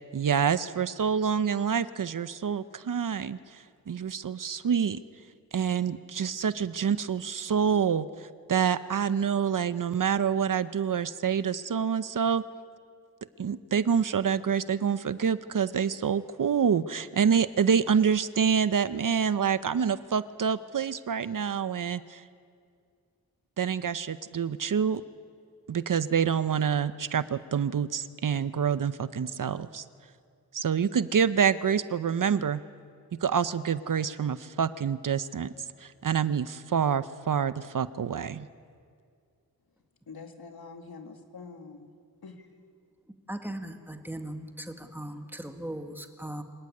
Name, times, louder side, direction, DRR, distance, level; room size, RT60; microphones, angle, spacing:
voice 1, 0.1-5.0 5.5-12.4 13.4-22.2 23.6-25.0 25.7-29.8 30.5-32.6 33.1-35.5 35.8-38.5, right 7 dB, 65° right, 14 dB, 0.7 m, -27 dB
voice 2, 40.1-42.0 42.2-42.5, left 4 dB, 90° left, 4 dB, 2.2 m, -45 dB
voice 3, 43.3-46.4, right 1 dB, 5° right, 5 dB, 1.7 m, -38 dB
25.0 x 15.0 x 9.6 m, 2.3 s
wide cardioid pair, 100°, 36 cm